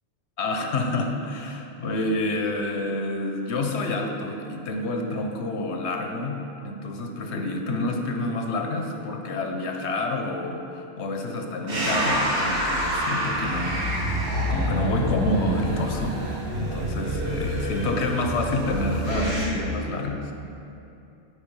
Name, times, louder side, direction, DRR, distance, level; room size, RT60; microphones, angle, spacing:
voice 1, 0.4-6.4 6.6-20.3, left 2 dB, 65° left, 3 dB, 0.9 m, -28 dB
sound 1, 11.7-19.5, right 1 dB, 50° right, 1.3 m, -27 dB
8.4 x 4.6 x 5.3 m, 2.8 s
omnidirectional pair, 1.3 m